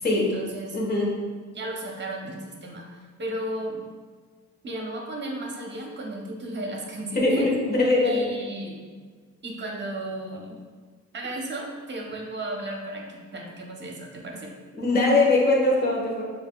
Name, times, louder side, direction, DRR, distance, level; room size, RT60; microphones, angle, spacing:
voice 1, 0.1-1.0 1.5-3.8 4.6-7.5 8.0-8.8 9.4-10.6 11.1-14.5, right 1 dB, 35° right, -1 dB, 0.9 m, -34 dB
voice 2, 0.7-1.2 7.1-8.2 14.8-16.2, left 2 dB, 30° left, -3 dB, 1.3 m, -21 dB
6.5 x 2.6 x 2.3 m, 1.5 s
cardioid pair, 90°, 30 cm